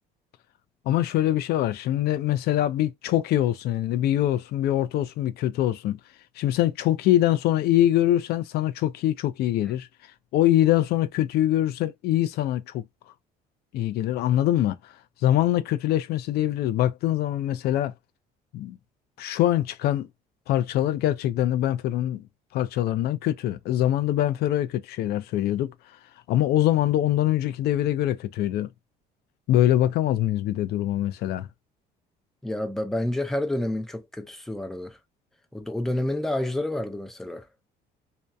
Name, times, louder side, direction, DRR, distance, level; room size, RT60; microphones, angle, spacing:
voice 1, 0.9-6.0 6.4-9.9 10.3-12.8 13.7-15.0 15.2-17.9 18.5-18.8 19.2-20.1 20.5-22.2 22.5-25.7 26.3-28.7 29.5-31.5, left 13 dB, 70° left, 0.4 m, -23 dB
voice 2, 32.4-35.0 35.5-37.5, left 1 dB, ahead, 0.5 m, -29 dB
2.7 x 2.1 x 2.2 m
cardioid pair, 110°, 17 cm